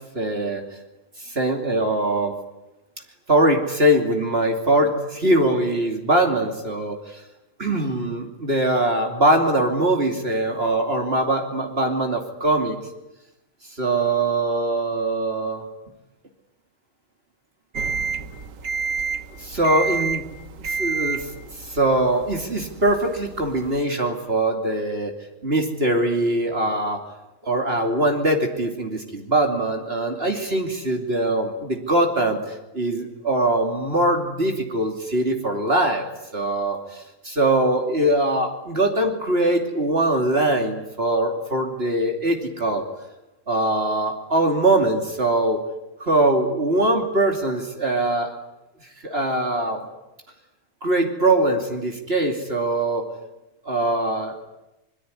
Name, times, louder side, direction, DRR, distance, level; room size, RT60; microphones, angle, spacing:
voice 1, 0.1-0.6 1.2-2.3 3.3-7.2 7.6-12.8 13.8-15.7 19.4-20.2 20.6-21.3 21.6-25.1 25.4-27.0 27.4-36.1 36.3-42.8 43.5-45.6 46.0-48.3 49.0-49.8 50.8-53.1 53.6-54.4, right 1 dB, 50° right, 3 dB, 3.1 m, -22 dB
sound 1, 17.7-23.8, right 5 dB, 85° right, 1.7 m, -30 dB
25.0 x 22.0 x 9.9 m, 0.96 s
omnidirectional pair, 1.3 m